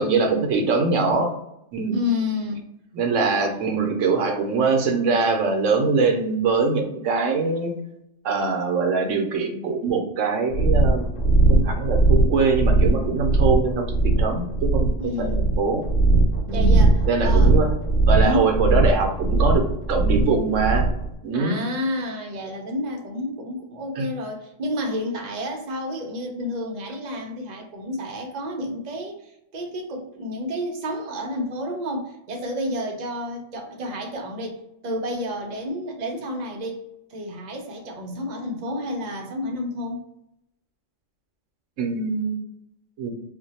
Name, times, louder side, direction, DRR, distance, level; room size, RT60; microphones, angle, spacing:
voice 1, 0.0-1.3 1.7-2.0 2.9-7.7 8.2-11.1 11.5-13.9 14.2-14.9 15.2-15.8 16.5-16.8 17.1-17.7 18.1-20.9 21.2-21.5 24.0-24.1 41.8-42.3 43.0-43.1, right 4 dB, 75° right, 3 dB, 0.9 m, -23 dB
voice 2, 1.9-2.6 3.2-3.9 15.0-15.6 16.5-17.5 18.2-18.5 21.3-40.1, left 1 dB, 45° right, 1 dB, 0.6 m, -30 dB
sound 1, 10.5-21.1, right 3 dB, 85° left, 1.1 m, -19 dB
2.5 x 2.2 x 4.0 m, 0.82 s
omnidirectional pair, 1.3 m